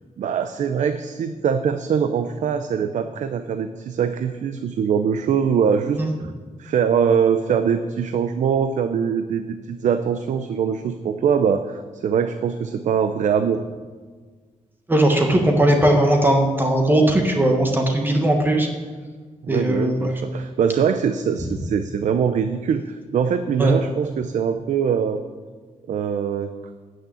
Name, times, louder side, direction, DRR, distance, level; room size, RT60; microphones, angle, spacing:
voice 1, 0.2-6.3 6.6-13.6 19.4-25.2 25.9-26.5, right 7 dB, 70° right, 9 dB, 0.6 m, -22 dB
voice 2, 14.9-18.7 19.5-20.1 23.6-23.7, right 1 dB, 15° right, 2 dB, 1.3 m, -18 dB
12.5 x 6.6 x 8.4 m, 1.5 s
wide cardioid pair, 150°, 13 cm